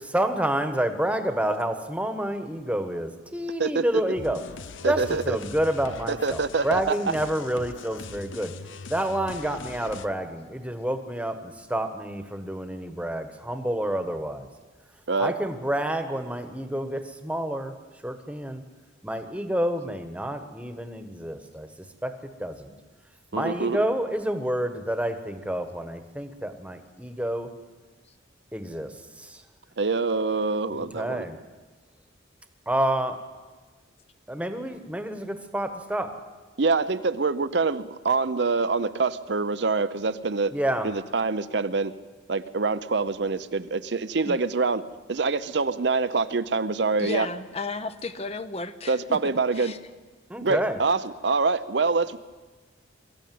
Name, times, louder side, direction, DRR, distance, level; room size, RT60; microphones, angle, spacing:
voice 1, 0.1-4.4 4.8-8.5 8.9-14.5 15.2-17.7 18.0-18.6 19.0-21.7 22.0-22.1 22.4-22.7 23.3-27.5 28.5-28.9 29.2-29.4 30.7-31.4 32.7-33.2 34.3-36.1 40.5-40.9 50.3-50.8, right 1 dB, 5° right, 8 dB, 1.3 m, -28 dB
voice 2, 3.6-4.0 4.8-5.4 6.1-7.0 15.1-15.3 23.3-23.8 29.8-31.2 36.6-40.5 40.8-41.9 42.3-44.8 45.1-47.3 48.9-49.7 50.4-52.2, right 4 dB, 60° right, 12 dB, 0.7 m, -25 dB
sound 1, 4.2-10.1, left 4 dB, 80° left, 0.8 m, -41 dB
voice 3, 47.0-49.2 49.5-49.8, left 3 dB, 30° left, 11 dB, 0.8 m, -34 dB
23.0 x 14.0 x 9.3 m, 1.3 s
head